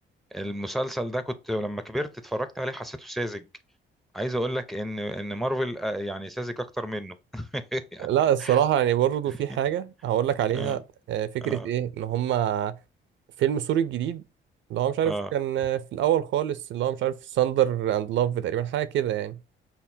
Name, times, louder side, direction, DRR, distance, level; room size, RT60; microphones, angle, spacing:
voice 1, 0.3-3.5 4.1-8.1 8.4-8.6 9.5-9.6 10.5-10.8 11.4-11.7 15.0-15.3, equal, ahead, 0.5 m, -31 dB
voice 2, 8.0-10.8 11.1-12.8 13.4-14.2 14.7-19.4, right 11 dB, 70° right, 0.5 m, -25 dB
5.7 x 2.2 x 2.6 m
cardioid pair, 90°, 20 cm